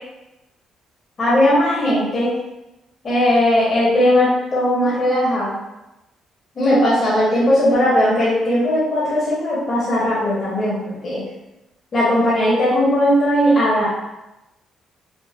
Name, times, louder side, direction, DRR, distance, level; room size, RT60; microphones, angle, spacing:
voice 1, 1.2-2.3 3.0-5.5 6.5-11.2 11.9-13.9, left 1 dB, 45° left, -8 dB, 1.2 m, -18 dB
3.7 x 2.4 x 2.4 m, 0.95 s
cardioid pair, 90°, 0 cm